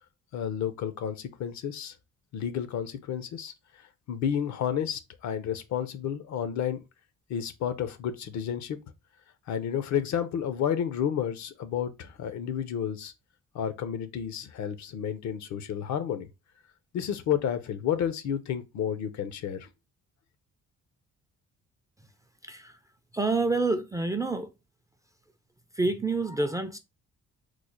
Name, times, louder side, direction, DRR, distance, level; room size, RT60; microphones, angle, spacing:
voice 1, 0.3-1.9 2.3-3.5 4.1-6.8 7.3-8.8 9.5-13.1 13.5-16.3 16.9-19.7, left 9 dB, 65° left, 0.6 m, -31 dB
voice 2, 22.4-22.8 23.1-24.5 25.7-26.8, right 3 dB, 10° right, 0.3 m, -28 dB
3.1 x 2.1 x 3.7 m
cardioid pair, 90°, 30 cm